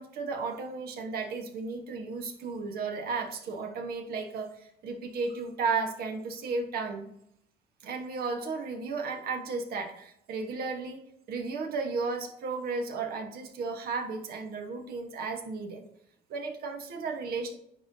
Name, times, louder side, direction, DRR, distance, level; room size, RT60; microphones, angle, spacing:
voice 1, 0.0-7.1 7.8-15.8 16.3-17.6, right 4 dB, 65° right, 5 dB, 1.2 m, -34 dB
9.7 x 3.8 x 2.7 m, 0.75 s
cardioid pair, 110°, 17 cm